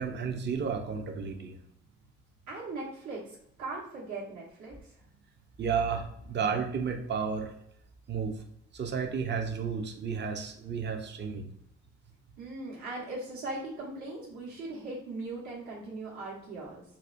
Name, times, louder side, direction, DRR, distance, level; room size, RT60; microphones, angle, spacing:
voice 1, 0.0-1.6 5.6-7.5 8.1-8.4 8.7-11.5, right 6 dB, 35° right, 5 dB, 0.5 m, -32 dB
voice 2, 2.5-4.9 12.4-16.8, right 2 dB, 70° right, -7 dB, 1.2 m, -39 dB
4.1 x 2.1 x 2.5 m, 0.75 s
cardioid pair, 90°, 30 cm